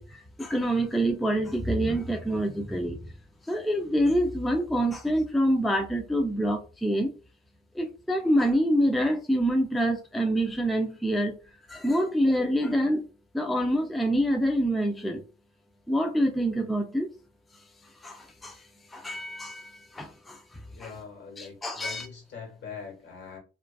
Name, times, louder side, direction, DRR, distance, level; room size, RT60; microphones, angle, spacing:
voice 1, 0.0-3.0 3.5-7.1 7.8-11.4 11.7-13.1 13.3-15.2 15.9-17.1 18.0-18.6 18.9-20.4 20.8-20.9 21.4-22.1, equal, ahead, 0.4 m, -26 dB
voice 2, 20.8-23.4, left 6 dB, 65° left, 1.4 m, -42 dB
2.4 x 2.3 x 2.2 m
cardioid pair, 90°, 20 cm